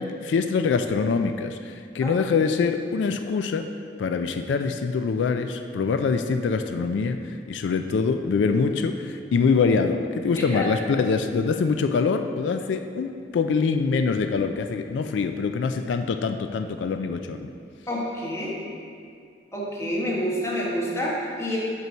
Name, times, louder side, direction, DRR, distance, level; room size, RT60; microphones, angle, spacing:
voice 1, 0.0-3.7 4.0-17.5, left 5 dB, 90° left, 7 dB, 0.3 m, -24 dB
voice 2, 10.3-10.7 17.9-18.6 19.5-21.6, equal, 15° left, -4 dB, 1.2 m, -28 dB
5.5 x 4.6 x 6.2 m, 2.3 s
head